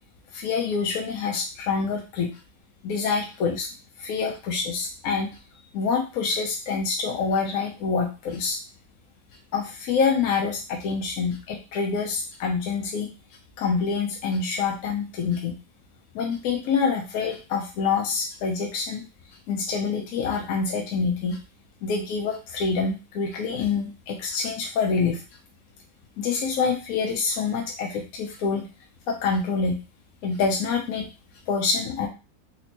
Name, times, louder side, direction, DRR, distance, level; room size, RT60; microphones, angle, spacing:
voice 1, 0.3-2.3 2.8-3.7 4.0-5.4 5.7-8.6 9.5-13.1 13.6-15.6 16.1-19.1 19.5-21.4 21.8-25.2 26.2-28.6 29.1-29.8 30.2-31.1 31.5-32.1, left 5 dB, 70° left, 1 dB, 1.0 m, -26 dB
4.2 x 2.1 x 2.9 m, 0.31 s
omnidirectional pair, 1.7 m